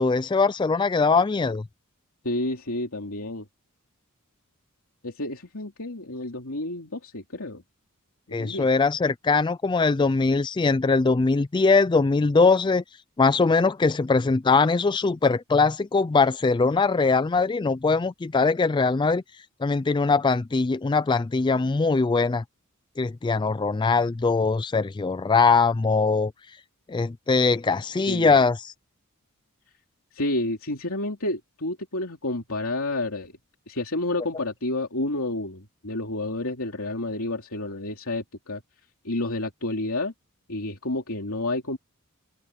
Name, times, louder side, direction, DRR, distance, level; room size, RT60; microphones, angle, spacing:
voice 1, 0.0-1.6 8.3-12.8 13.2-19.2 19.6-22.4 23.0-26.3 26.9-28.7, left 4 dB, 20° left, 0.3 m, -21 dB
voice 2, 2.2-3.4 5.0-7.6 8.3-8.7 28.1-28.4 30.1-33.3 33.7-38.6 39.0-40.1 40.5-41.8, left 2 dB, 70° left, 3.1 m, -30 dB
open air
head